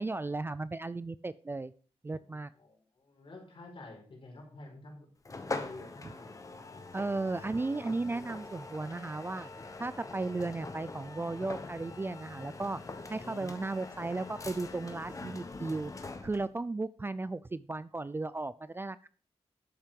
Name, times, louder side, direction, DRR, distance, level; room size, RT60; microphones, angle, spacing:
voice 1, 0.0-1.7 2.0-2.5 6.0-6.1 6.9-9.5 9.8-12.8 13.1-15.9 16.2-19.1, right 3 dB, 20° right, 16 dB, 0.4 m, -35 dB
voice 2, 2.2-5.1 5.5-6.8 13.1-13.6, left 2 dB, 55° left, 0 dB, 5.0 m, -50 dB
sound 1, 5.2-16.5, left 3 dB, 30° left, 1.3 m, -43 dB
12.0 x 7.5 x 5.3 m, 0.40 s
wide cardioid pair, 135°, 11 cm